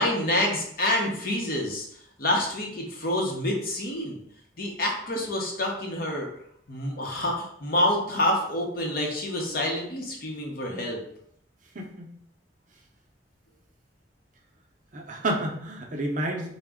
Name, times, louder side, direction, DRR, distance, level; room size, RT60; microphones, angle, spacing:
voice 1, 0.0-1.9 2.2-4.2 4.6-6.3 6.7-11.0, left 1 dB, 50° left, 0 dB, 0.8 m, -27 dB
voice 2, 11.7-12.1 14.9-16.5, right 1 dB, 45° right, 0 dB, 0.6 m, -30 dB
3.9 x 2.2 x 3.5 m, 0.69 s
head